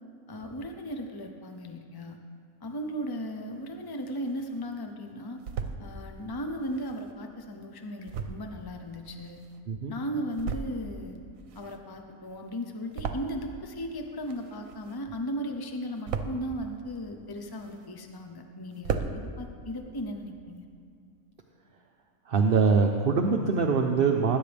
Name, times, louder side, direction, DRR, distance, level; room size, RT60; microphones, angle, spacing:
voice 1, 0.3-2.2 2.6-5.4 5.8-9.4 9.9-11.2 11.5-19.1 19.4-20.7, equal, 35° left, 4 dB, 0.4 m, -36 dB
sound 1, 3.6-4.6 5.1-5.8 6.5-9.8 10.2-11.0 11.3-13.7 14.0-15.2 15.6-16.5 17.1-18.1 18.4-18.5 18.7-19.2, right 6 dB, 70° right, 1.2 m, -37 dB
voice 2, 22.3-24.4, right 5 dB, 50° right, 2 dB, 0.8 m, -23 dB
20.5 x 10.0 x 3.4 m, 2.4 s
omnidirectional pair, 1.5 m